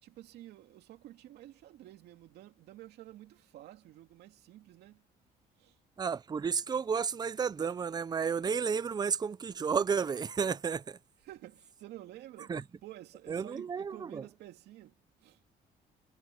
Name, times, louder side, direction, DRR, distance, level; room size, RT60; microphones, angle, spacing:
voice 1, 0.0-5.0 5.6-5.8 11.2-12.5 12.8-15.4, right 14 dB, 75° right, 2.6 m, -51 dB
voice 2, 6.0-11.0 12.5-12.6 13.3-14.2, right 6 dB, 25° right, 0.6 m, -32 dB
cardioid pair, 110°, 17 cm